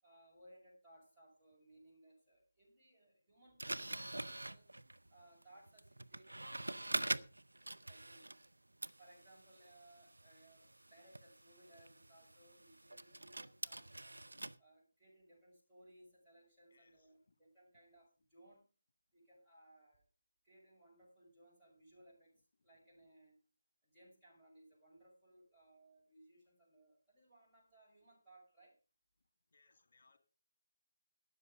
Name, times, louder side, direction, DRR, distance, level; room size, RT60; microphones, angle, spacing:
voice 1, 0.0-4.7 5.1-7.3 7.9-8.3 9.0-14.2 14.6-18.7 19.1-20.0 20.4-23.4 23.8-28.8, right 1 dB, 10° right, 6.8 m, -64 dB
sound 1, 3.6-8.5 8.8-14.6, right 2 dB, 80° right, 0.6 m, -45 dB
voice 2, 16.7-17.4 29.5-30.2, left 3 dB, 45° left, 2.5 m, -71 dB
13.0 x 9.6 x 5.2 m
figure-of-eight pair, 155°, 0 cm